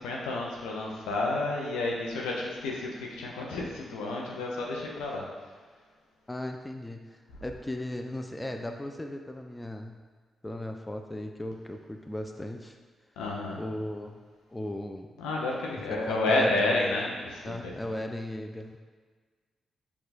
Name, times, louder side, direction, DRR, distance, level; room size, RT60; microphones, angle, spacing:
voice 1, 0.0-5.2 13.2-13.6 15.2-17.5, left 2 dB, 85° left, -2 dB, 0.6 m, -30 dB
voice 2, 6.3-10.0 10.4-12.8 13.6-14.2 14.5-15.1 15.9-16.7 17.4-18.8, left 1 dB, 15° left, 4 dB, 0.4 m, -37 dB
4.7 x 2.3 x 4.1 m, 1.5 s
hypercardioid pair, 40°, 0 cm